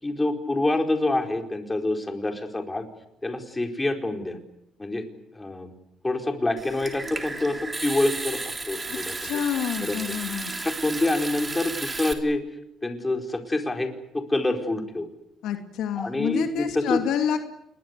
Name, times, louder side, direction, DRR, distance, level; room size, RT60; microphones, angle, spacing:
voice 1, 0.0-2.9 3.2-4.4 4.8-5.0 5.3-5.7 6.0-9.1 9.8-10.0 10.6-12.4 12.8-15.1 16.0-17.0, left 2 dB, 15° left, 4 dB, 4.5 m, -26 dB
Water tap faucet / Sink (filling or washing) / Trickle dribble, 6.6-12.1, right 3 dB, 20° right, 3.5 m, -33 dB
voice 2, 9.2-10.5 15.4-17.4, left 9 dB, 75° left, 6 dB, 2.5 m, -28 dB
28.0 x 21.5 x 8.3 m, 0.80 s
supercardioid pair, 80°, 0 cm